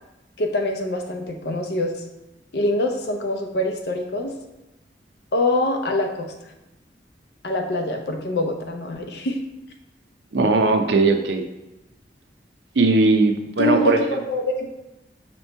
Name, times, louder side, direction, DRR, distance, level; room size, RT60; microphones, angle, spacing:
voice 1, 0.4-2.0 2.5-4.3 5.3-6.3 7.4-9.4 13.6-14.7, left 1 dB, 70° left, 4 dB, 0.6 m, -24 dB
voice 2, 10.3-11.5 12.8-14.0, right 3 dB, 85° right, 5 dB, 0.5 m, -18 dB
5.2 x 3.0 x 3.3 m, 1.0 s
head